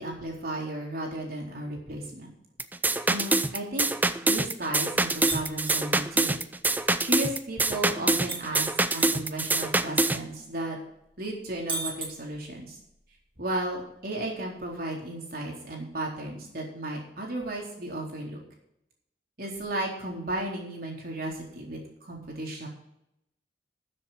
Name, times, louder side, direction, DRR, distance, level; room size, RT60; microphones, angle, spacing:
voice 1, 0.0-2.3 3.1-3.9 4.2-6.4 7.0-10.8 11.2-12.8 13.4-18.4 19.4-22.7, right 1 dB, 55° right, -1 dB, 4.0 m, -34 dB
sound 1, 2.6-10.2, right 2 dB, 10° right, 0.5 m, -25 dB
sound 2, 5.3-5.8 8.3-9.6 9.9-10.0 11.7-12.6, right 3 dB, 30° right, 2.3 m, -35 dB
13.5 x 7.6 x 5.9 m, 0.78 s
head